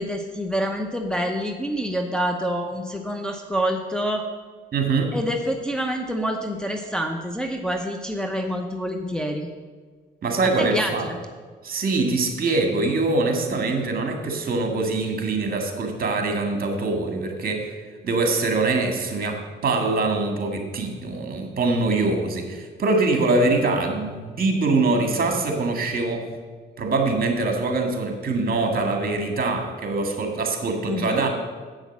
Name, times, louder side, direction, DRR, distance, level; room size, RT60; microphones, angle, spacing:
voice 1, 0.0-4.3 5.1-9.5 10.6-11.2 30.8-31.2, equal, 5° left, 3 dB, 0.8 m, -27 dB
voice 2, 4.7-5.2 10.2-11.0 11.6-17.7 18.0-26.3 26.8-31.3, right 3 dB, 50° right, 4 dB, 2.0 m, -23 dB
8.2 x 6.4 x 7.2 m, 1.5 s
cardioid pair, 90°, 20 cm